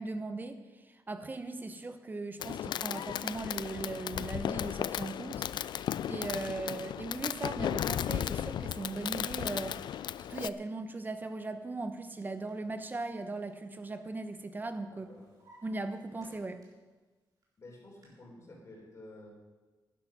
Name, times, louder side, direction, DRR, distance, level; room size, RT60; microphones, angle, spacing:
voice 1, 0.0-5.8 6.1-15.1 15.6-16.6, right 3 dB, 25° right, 9 dB, 1.0 m, -39 dB
Fireworks, 2.4-10.5, left 10 dB, 70° left, 0.4 m, -35 dB
Drawer open or close, 11.9-14.3 14.6-16.9 17.4-18.1, right 1 dB, 50° right, 3.9 m, -63 dB
voice 2, 14.9-15.3 17.6-19.3, left 2 dB, 35° left, -2 dB, 4.2 m, -51 dB
11.5 x 11.0 x 6.1 m, 1.2 s
cardioid pair, 120°, 8 cm